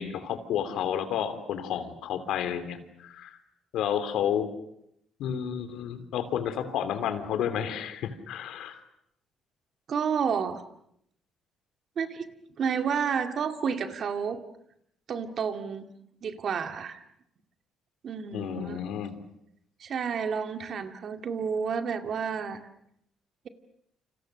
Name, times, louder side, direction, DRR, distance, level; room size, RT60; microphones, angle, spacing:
voice 1, 0.0-3.4 3.7-4.5 5.2-8.8 18.3-19.2, left 9 dB, 80° left, 10 dB, 3.0 m, -31 dB
voice 2, 9.9-10.6 12.0-12.3 12.6-14.4 15.1-15.9 16.2-17.0 18.0-18.8 19.8-22.6, right 6 dB, 55° right, 7 dB, 2.2 m, -30 dB
29.0 x 27.0 x 6.6 m, 0.75 s
cardioid pair, 110°, 0 cm